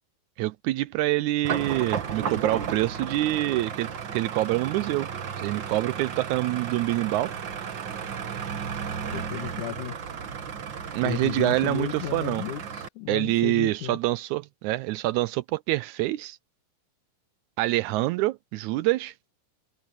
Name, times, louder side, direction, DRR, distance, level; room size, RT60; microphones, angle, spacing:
voice 1, 0.4-5.1 5.4-7.3 10.9-12.4 13.1-16.4 17.6-19.1, right 17 dB, 80° right, 1.8 m, -26 dB
sound 1, 1.4-12.9, right 7 dB, 50° right, 1.6 m, -34 dB
voice 2, 9.1-10.0 11.0-14.0, left 12 dB, 70° left, 2.7 m, -34 dB
omnidirectional pair, 3.8 m